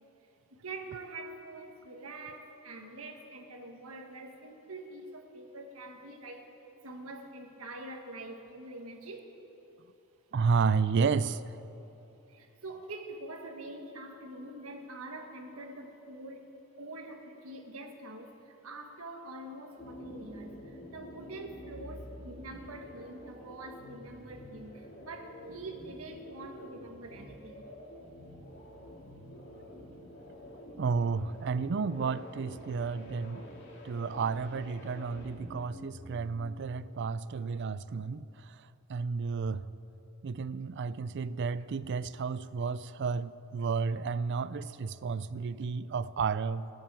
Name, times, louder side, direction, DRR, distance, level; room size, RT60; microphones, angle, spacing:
voice 1, 0.6-9.3 10.3-10.4 12.3-27.7 30.4-30.6, right 2 dB, 90° right, 1.7 m, -45 dB
voice 2, 10.3-11.5 30.8-33.4 33.8-39.7 40.2-46.7, right 5 dB, 55° right, 0.4 m, -32 dB
sound 1, 19.8-36.9, equal, 55° left, 2.7 m, -48 dB
17.0 x 11.0 x 7.6 m
head